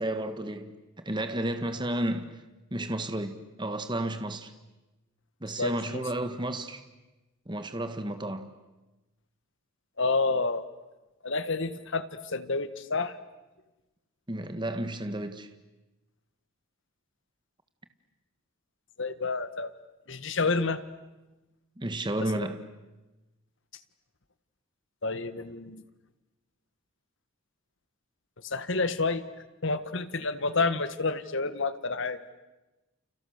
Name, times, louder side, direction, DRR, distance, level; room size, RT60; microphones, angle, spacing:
voice 1, 0.0-2.4 2.7-4.5 5.4-6.8 7.5-8.5 14.3-15.5 21.8-22.6, right 1 dB, 20° right, 1.5 m, -32 dB
voice 2, 5.6-6.0 10.0-10.7 11.2-13.2 19.0-19.7 20.1-20.8 22.3-22.5 25.0-25.9 28.4-29.2 29.6-32.2, left 3 dB, 60° left, 1.5 m, -29 dB
30.0 x 29.5 x 6.6 m
head